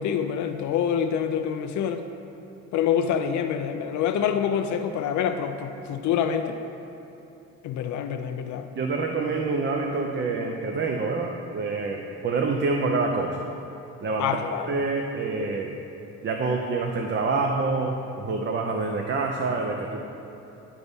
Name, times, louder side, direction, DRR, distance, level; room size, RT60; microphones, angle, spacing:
voice 1, 0.0-2.0 2.7-6.6 7.6-8.7 14.2-14.7, left 8 dB, 70° left, 7 dB, 0.5 m, -26 dB
voice 2, 8.8-13.4 14.0-14.3 14.7-15.7 16.2-20.0, right 3 dB, 40° right, 2 dB, 0.6 m, -27 dB
11.0 x 4.0 x 3.5 m, 2.9 s
cardioid pair, 90°, 30 cm